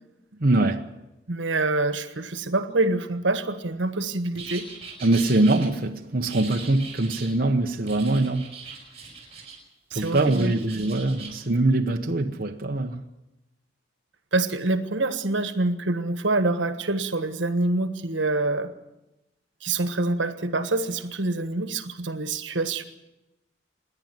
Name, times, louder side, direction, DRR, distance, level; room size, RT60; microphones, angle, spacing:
voice 1, 0.4-0.9 5.0-8.5 9.9-13.0, right 2 dB, 50° right, 1.0 m, -23 dB
voice 2, 1.3-4.7 9.9-10.5 14.3-18.7 19.6-22.8, right 2 dB, 80° right, 1.5 m, -26 dB
sound 1, 4.3-5.7 6.3-7.3 7.9-9.6 9.9-11.4, right 5 dB, 35° right, 6.8 m, -41 dB
27.0 x 11.0 x 9.1 m
head